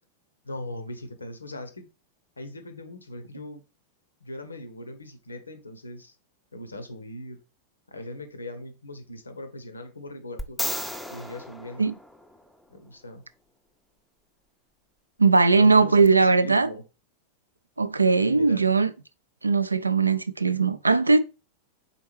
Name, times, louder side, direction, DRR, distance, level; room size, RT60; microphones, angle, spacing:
voice 1, 0.4-1.9 2.4-3.6 4.2-6.1 6.5-7.4 7.9-10.7 11.1-11.8 12.7-13.2 15.6-16.8 18.2-18.7, left 1 dB, 80° left, 0.7 m, -39 dB
sound 1, 10.4-12.6 16.0-16.1, equal, ahead, 0.5 m, -34 dB
voice 2, 15.2-16.7 17.8-18.9 19.4-21.2, right 4 dB, 80° right, 0.3 m, -19 dB
4.2 x 3.6 x 3.1 m
figure-of-eight pair, 90°, 0 cm